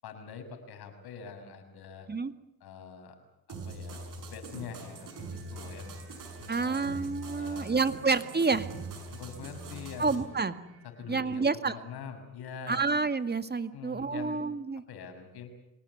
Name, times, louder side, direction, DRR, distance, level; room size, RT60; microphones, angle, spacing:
voice 1, 0.0-2.1 2.6-3.2 3.5-6.0 6.4-7.1 7.4-7.8 9.1-10.2 11.0-12.9 13.7-14.4 14.9-15.5, left 6 dB, 70° left, 6 dB, 6.1 m, -44 dB
sound 1, 3.5-10.2, right 3 dB, 55° right, 6.9 m, -43 dB
sound 2, 4.5-11.2, right 2 dB, 80° right, 7.1 m, -54 dB
voice 2, 6.5-8.7 10.0-10.5 11.1-11.8 12.7-14.8, right 4 dB, 25° right, 11 dB, 2.0 m, -29 dB
25.5 x 18.5 x 9.4 m, 0.87 s
supercardioid pair, 70°, 40 cm